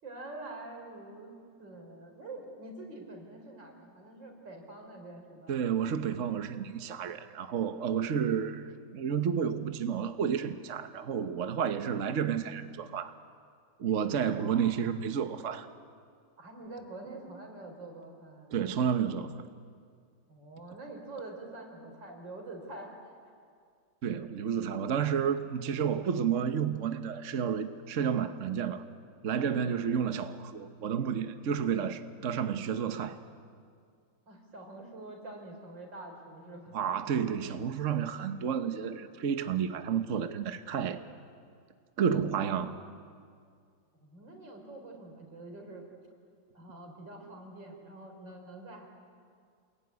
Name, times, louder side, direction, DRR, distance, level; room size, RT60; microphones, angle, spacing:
voice 1, 0.0-5.5 14.4-15.0 16.4-18.5 20.3-23.2 29.5-29.8 34.3-36.8 44.0-45.8 46.5-48.9, right 2 dB, 80° right, 2 dB, 5.1 m, -46 dB
voice 2, 5.5-13.1 13.8-15.7 18.5-19.5 24.0-28.8 29.2-33.2 36.7-41.0 42.0-42.8, right 7 dB, 50° right, 9 dB, 1.2 m, -31 dB
28.0 x 21.5 x 9.6 m, 2.2 s
omnidirectional pair, 2.0 m